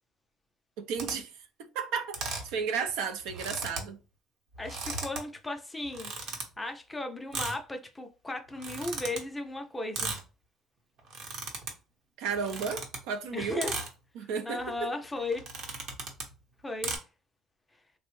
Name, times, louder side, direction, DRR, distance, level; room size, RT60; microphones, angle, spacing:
voice 1, 0.8-1.3 1.6-4.0 4.7-5.0 12.2-13.6 14.2-14.9, right 6 dB, 85° right, 0.4 m, -33 dB
sound 1, 0.9-1.1 2.1-2.5 2.9-3.0 3.2-3.9 4.5-5.2 5.9-6.4 7.3-7.6 8.5-9.2 9.9-10.2 11.0-11.7 12.3-13.0 13.6-13.9 14.6-14.8 15.3-16.3 16.8-17.0, right 3 dB, 60° right, 0.9 m, -36 dB
voice 2, 4.6-10.2 13.3-13.8 14.2-15.5 16.6-17.0, left 2 dB, 10° left, 0.4 m, -36 dB
3.3 x 2.0 x 3.0 m
cardioid pair, 140°, 0 cm